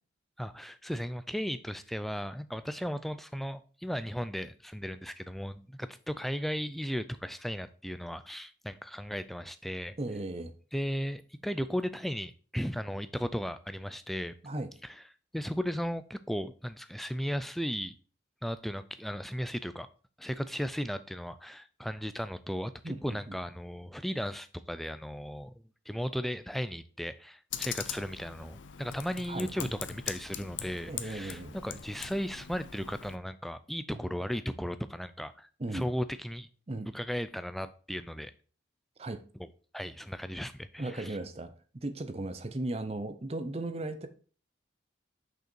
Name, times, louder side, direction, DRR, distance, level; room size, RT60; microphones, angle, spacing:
voice 1, 0.4-10.0 10.7-14.3 14.8-14.9 15.3-17.9 18.4-19.9 20.2-25.5 25.9-36.5 36.9-38.3 39.7-41.2, equal, ahead, 0.3 m, -36 dB
voice 2, 10.0-10.5 14.4-14.7 22.8-23.4 29.3-29.7 30.9-31.6 33.9-34.0 35.6-35.9 36.7-36.9 39.0-39.2 40.8-44.1, right 2 dB, 30° right, 0.6 m, -37 dB
Computer keyboard, 27.5-33.2, left 9 dB, 80° left, 0.6 m, -41 dB
6.4 x 5.4 x 4.4 m
head